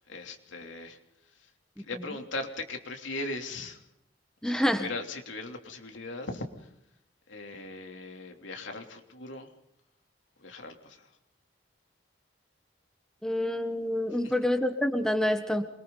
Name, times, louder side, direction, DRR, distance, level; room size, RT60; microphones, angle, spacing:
voice 1, 0.1-1.5 1.8-3.8 4.4-6.7 7.3-9.5 10.4-11.1 14.2-14.3, left 2 dB, 85° left, 3 dB, 3.3 m, -39 dB
voice 2, 4.4-4.9 13.2-15.6, left 1 dB, 5° left, 6 dB, 1.5 m, -27 dB
27.5 x 23.5 x 4.1 m, 0.81 s
head